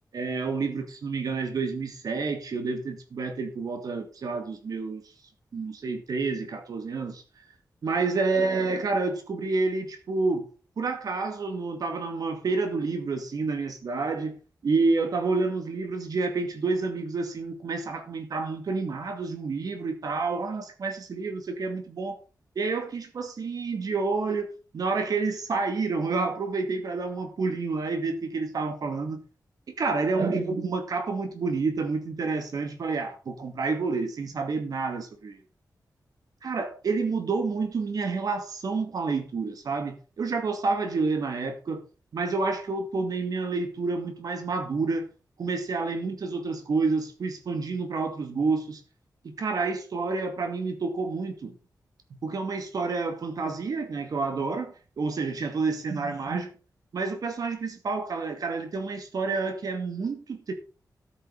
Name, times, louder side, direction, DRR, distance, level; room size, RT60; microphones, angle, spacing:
voice 1, 0.1-5.0 5.5-7.2 7.8-10.5 10.8-14.3 14.6-22.2 22.6-29.2 29.8-35.4 36.4-41.8 42.1-45.1 45.4-48.8 49.2-51.5 52.2-56.5 56.9-60.5, right 4 dB, 60° right, 2.4 m, -29 dB
13.0 x 8.3 x 4.1 m
wide cardioid pair, 175°, 7 cm